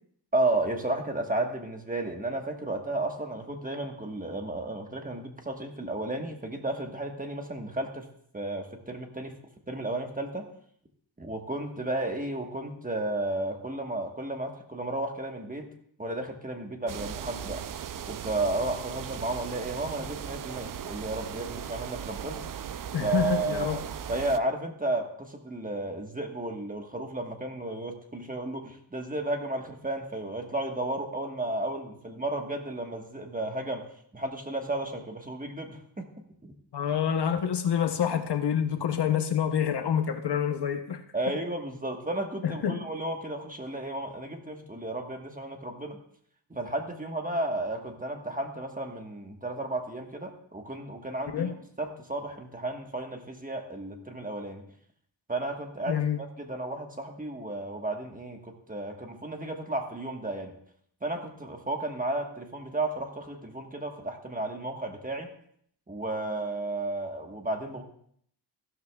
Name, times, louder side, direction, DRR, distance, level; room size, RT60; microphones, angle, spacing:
voice 1, 0.3-8.1 8.3-9.4 9.7-10.4 11.2-15.7 16.0-17.6 18.1-22.4 23.0-33.8 34.1-36.1 36.4-36.5 41.1-46.0 46.5-54.6 55.3-60.5 61.0-65.3 65.9-67.8, right 2 dB, 20° right, 3 dB, 1.3 m, -33 dB
sound 1, 16.9-24.4, right 9 dB, 50° right, 0.5 m, -38 dB
voice 2, 22.9-23.8 36.7-41.0 42.4-42.8 51.3-51.5 55.9-56.2, left 8 dB, 65° left, 7 dB, 0.9 m, -27 dB
14.5 x 12.5 x 2.3 m, 0.65 s
wide cardioid pair, 120°, 43 cm